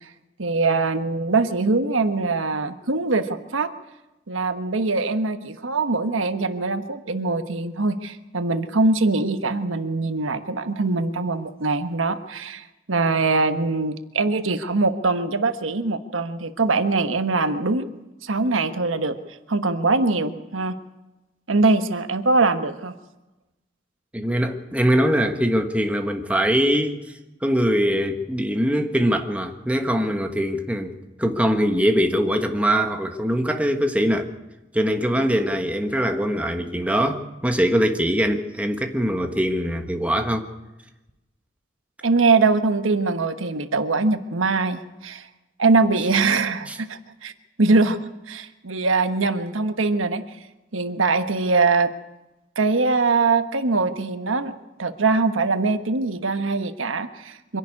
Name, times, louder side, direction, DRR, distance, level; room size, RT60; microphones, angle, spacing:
voice 1, 0.4-3.7 4.3-17.9 18.2-19.2 19.5-20.7 21.5-22.9 42.0-45.3 45.6-47.3 47.6-48.0 48.3-50.2 50.7-51.9 52.5-54.5 54.8-57.6, right 3 dB, 90° right, 9 dB, 1.3 m, -22 dB
voice 2, 24.1-34.3 34.7-40.5 46.7-46.8, equal, 5° right, 5 dB, 1.4 m, -22 dB
25.0 x 11.5 x 9.7 m, 1.0 s
head